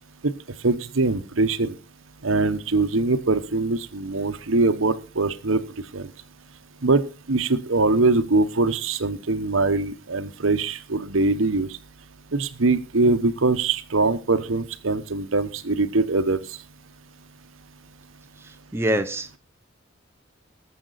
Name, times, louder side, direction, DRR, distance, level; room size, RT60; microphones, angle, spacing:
voice 1, 0.6-1.8 2.2-5.6 5.9-6.1 6.8-7.0 7.3-11.8 12.3-16.6, right 3 dB, 75° right, 1.1 m, -22 dB
voice 2, 18.4-19.4, right 1 dB, 10° right, 0.7 m, -26 dB
19.0 x 7.5 x 4.1 m
head